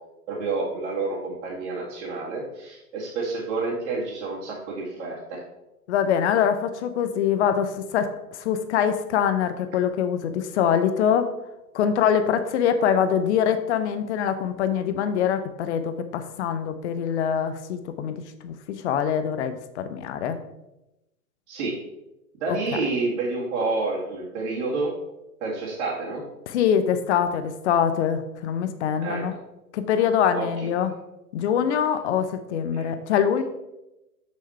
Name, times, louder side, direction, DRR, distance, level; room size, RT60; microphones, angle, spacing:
voice 1, 0.3-5.4 21.5-21.7 22.4-24.9 25.4-26.2 29.0-29.2 30.3-30.5 32.7-32.9, right 3 dB, 50° right, -7 dB, 2.2 m, -29 dB
voice 2, 5.9-11.3 11.7-20.4 22.5-22.6 26.5-29.3 29.7-30.9 31.3-33.4, left 8 dB, 45° left, 9 dB, 0.8 m, -24 dB
6.6 x 6.3 x 4.3 m, 0.95 s
hypercardioid pair, 120°, 46 cm